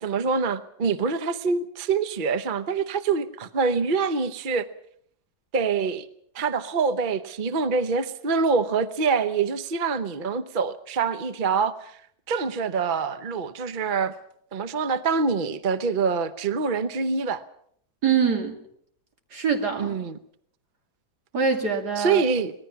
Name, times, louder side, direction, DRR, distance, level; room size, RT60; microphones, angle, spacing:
voice 1, 0.0-4.7 5.5-6.1 6.3-12.0 12.3-14.1 14.5-17.4 19.8-20.2 22.0-22.5, right 5 dB, 40° right, 0.9 m, -25 dB
voice 2, 18.0-18.6 19.3-20.0 21.3-22.2, right 6 dB, 90° right, 3.2 m, -24 dB
25.0 x 19.0 x 5.9 m
omnidirectional pair, 1.7 m